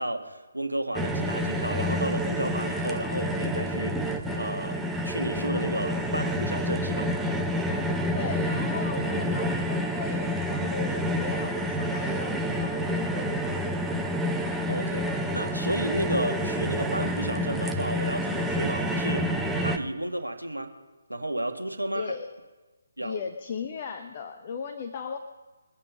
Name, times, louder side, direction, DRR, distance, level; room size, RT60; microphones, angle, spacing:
voice 1, 0.0-7.1 14.7-15.1 15.3-19.3 19.6-20.7 21.1-22.1 23.0-23.2, right 1 dB, 90° right, 5 dB, 1.8 m, -32 dB
sound 1, 0.9-19.8, equal, 5° right, 0.9 m, -28 dB
voice 2, 8.1-14.2 14.8-15.0 21.9-22.3 23.0-25.2, left 6 dB, 35° left, 7 dB, 1.0 m, -37 dB
23.5 x 8.6 x 5.4 m, 1.2 s
figure-of-eight pair, 145°, 0 cm